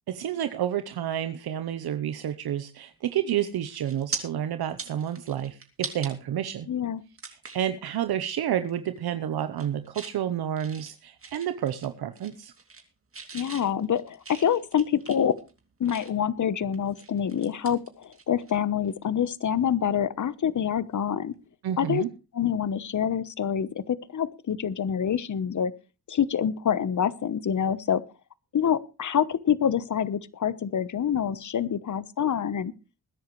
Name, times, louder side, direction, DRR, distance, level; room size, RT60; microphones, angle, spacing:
voice 1, 0.1-6.7 7.3-12.5 21.6-22.1, right 10 dB, 70° right, 11 dB, 0.9 m, -30 dB
sound 1, 3.1-3.3 3.7-4.2 4.6-6.1 6.6-6.7 7.2-7.7 8.1-8.3 8.6-9.0 9.4-10.2 10.6-11.9 12.2-12.9 13.1-16.3 16.7-18.6 18.8-19.0 20.9-21.1, right 4 dB, 35° right, 2.7 m, -41 dB
voice 2, 6.7-7.0 13.3-15.3 15.8-21.3 21.8-22.0 22.3-25.7 26.1-28.0 28.5-32.7, left 8 dB, 50° left, 17 dB, 1.0 m, -26 dB
21.0 x 10.5 x 3.2 m, 0.31 s
cardioid pair, 75°, 39 cm